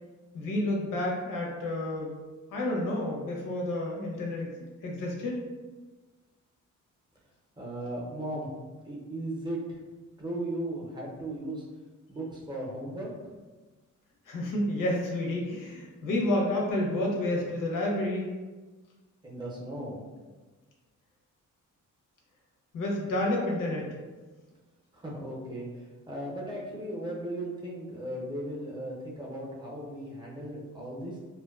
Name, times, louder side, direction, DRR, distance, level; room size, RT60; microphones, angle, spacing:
voice 1, 0.3-2.2 2.5-4.6 4.8-5.4 14.3-18.3 22.7-24.0, left 1 dB, 85° left, -1 dB, 0.7 m, -30 dB
voice 2, 7.6-8.5 8.9-9.6 10.2-11.6 12.1-13.1 19.2-20.0 24.9-25.7 26.1-31.1, right 1 dB, 15° right, -4 dB, 0.5 m, -36 dB
2.5 x 2.2 x 2.3 m, 1.3 s
wide cardioid pair, 135°, 31 cm